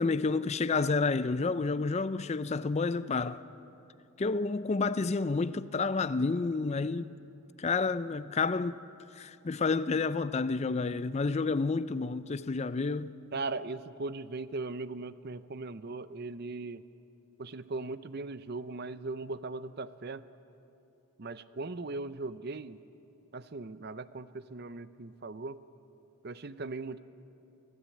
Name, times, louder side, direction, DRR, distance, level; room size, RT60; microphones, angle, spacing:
voice 1, 0.0-3.4 4.2-7.1 7.6-8.8 9.2-13.1, left 4 dB, 30° left, 0.4 m, -30 dB
voice 2, 13.3-16.8 17.4-20.2 21.2-22.8 23.3-25.6 26.2-27.0, right 3 dB, 50° right, 0.6 m, -39 dB
25.0 x 16.0 x 8.5 m
head